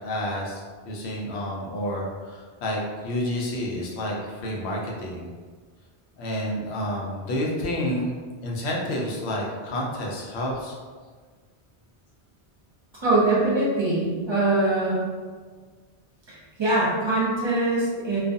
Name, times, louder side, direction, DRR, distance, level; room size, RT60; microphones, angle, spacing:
voice 1, 0.0-5.3 6.2-8.1 8.4-10.8, left 1 dB, 90° left, -2 dB, 0.9 m, -29 dB
voice 2, 13.0-15.0 16.3-18.2, right 2 dB, 30° right, -8 dB, 0.7 m, -23 dB
2.4 x 2.3 x 2.5 m, 1.5 s
omnidirectional pair, 1.1 m